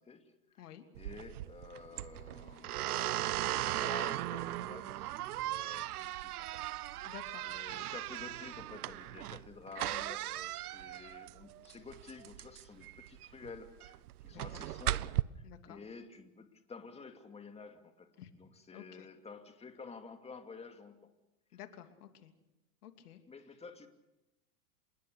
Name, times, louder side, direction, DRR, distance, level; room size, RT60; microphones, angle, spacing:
voice 1, 0.0-0.7 1.0-6.6 7.0-7.1 7.4-18.1 18.4-21.1 23.3-23.9, left 4 dB, 15° left, 6 dB, 2.5 m, -51 dB
sound 1, 1.0-15.2, right 15 dB, 75° right, 0.8 m, -38 dB
voice 2, 7.0-7.4 14.3-14.4 15.4-15.8 18.2-18.3 18.7-19.1 21.5-22.3 22.8-23.2, left 11 dB, 75° left, 6 dB, 3.1 m, -51 dB
27.0 x 21.0 x 6.6 m, 0.95 s
hypercardioid pair, 115°, 45 cm